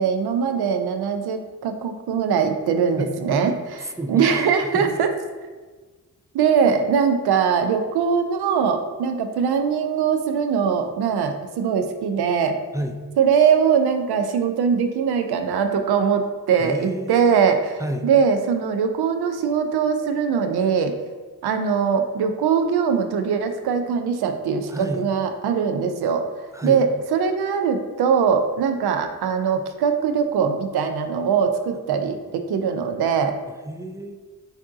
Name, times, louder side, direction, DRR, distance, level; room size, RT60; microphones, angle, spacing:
voice 1, 0.0-3.5 4.1-5.1 6.3-12.6 13.2-20.9 21.4-26.2 26.6-33.3, right 6 dB, 75° right, 7 dB, 0.5 m, -21 dB
voice 2, 3.0-4.9 12.7-13.0 16.6-17.4 17.8-18.1 24.7-25.0 26.5-26.8 33.6-34.1, right 1 dB, 10° right, 5 dB, 0.3 m, -30 dB
3.5 x 2.7 x 3.7 m, 1.4 s
supercardioid pair, 50°, 39 cm